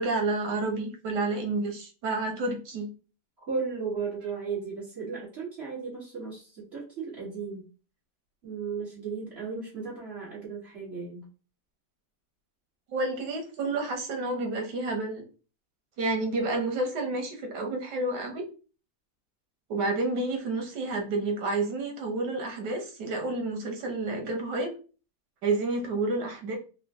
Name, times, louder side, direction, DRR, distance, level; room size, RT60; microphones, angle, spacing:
voice 1, 0.0-2.9 12.9-15.2 16.0-18.4 19.7-24.7 25.4-26.6, right 2 dB, 90° right, 3 dB, 1.5 m, -30 dB
voice 2, 3.5-7.6 8.4-11.3, right 5 dB, 40° right, -6 dB, 1.6 m, -35 dB
3.7 x 2.2 x 3.5 m, 0.36 s
omnidirectional pair, 1.8 m